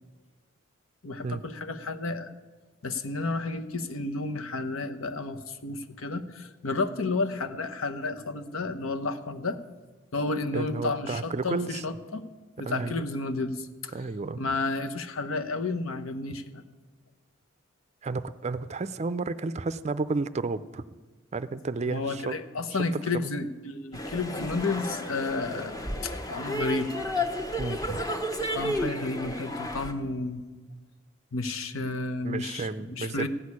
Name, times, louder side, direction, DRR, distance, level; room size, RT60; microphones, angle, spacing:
voice 1, 1.0-2.3 2.8-9.6 10.1-12.2 12.6-14.0 14.4-16.6 21.9-25.8 26.0-26.9 28.6-30.5 31.3-33.3, left 3 dB, 80° left, 8 dB, 0.9 m, -31 dB
voice 2, 10.5-11.8 12.6-13.0 13.9-14.4 18.0-20.8 21.3-22.3 27.6-28.0 32.2-33.3, right 3 dB, 30° right, 14 dB, 0.4 m, -32 dB
sound 1, 23.9-29.9, left 1 dB, 20° left, 1.0 m, -32 dB
15.0 x 6.4 x 9.7 m, 1.3 s
head